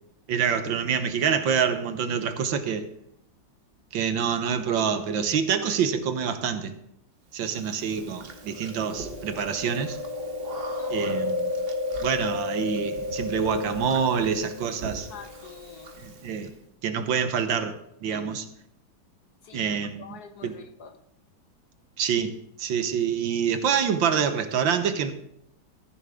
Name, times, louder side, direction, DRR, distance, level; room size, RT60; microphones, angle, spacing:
voice 1, 0.3-2.9 3.9-6.7 7.3-10.0 10.9-11.5 12.0-15.1 16.0-16.5 16.8-18.4 19.5-20.1 20.4-20.5 22.0-22.3 22.6-25.1, right 7 dB, 75° right, 1.7 m, -26 dB
voice 2, 2.0-2.6 10.8-11.1 15.1-15.9 18.1-18.4 19.4-21.0, left 5 dB, 60° left, 1.2 m, -46 dB
Chewing mastication, 7.5-16.5, left 2 dB, 35° right, 1.1 m, -33 dB
14.0 x 10.5 x 3.6 m
omnidirectional pair, 2.2 m